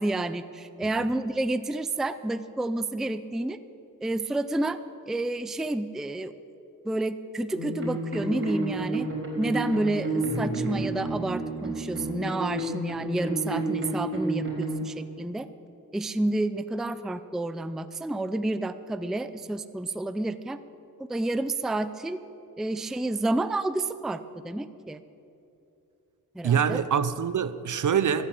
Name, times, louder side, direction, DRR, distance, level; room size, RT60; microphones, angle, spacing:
voice 1, 0.0-3.6 4.0-4.8 5.1-6.3 6.8-9.1 9.4-15.5 15.9-20.6 21.0-22.2 22.6-25.0 26.3-26.8, right 2 dB, ahead, 0.4 m, -30 dB
sound 1, 7.5-14.7, right 2 dB, 35° right, 4.3 m, -30 dB
voice 2, 26.4-28.3, right 7 dB, 55° right, 0.7 m, -25 dB
14.5 x 8.9 x 8.4 m
cardioid pair, 85°, 36 cm